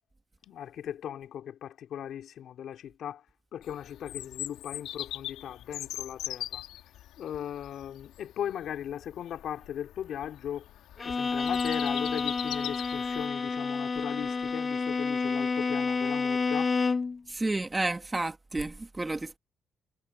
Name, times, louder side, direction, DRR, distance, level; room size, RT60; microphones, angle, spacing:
voice 1, 0.4-3.2 3.5-6.6 7.2-10.7 11.0-16.7, left 10 dB, 70° left, 3.7 m, -38 dB
Bird vocalization bird call bird song, 3.6-13.3, left 13 dB, 85° left, 5.0 m, -41 dB
Bowed string instrument, 11.0-17.2, left 4 dB, 35° left, 2.3 m, -29 dB
voice 2, 17.3-19.4, right 2 dB, 20° right, 2.4 m, -31 dB
cardioid pair, 90°, 0 cm